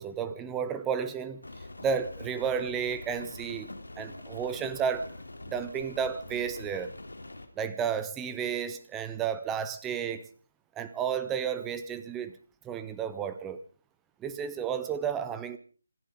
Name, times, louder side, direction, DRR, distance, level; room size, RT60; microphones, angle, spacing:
voice 1, 0.0-1.4 1.8-5.1 5.5-6.9 7.6-10.3 10.8-12.3 12.6-13.6 14.2-15.6, right 7 dB, 10° right, 1.0 m, -32 dB
Rain, 1.4-7.5, left 2 dB, 65° left, 3.3 m, -44 dB
26.5 x 10.5 x 5.2 m
figure-of-eight pair, 155°, 0 cm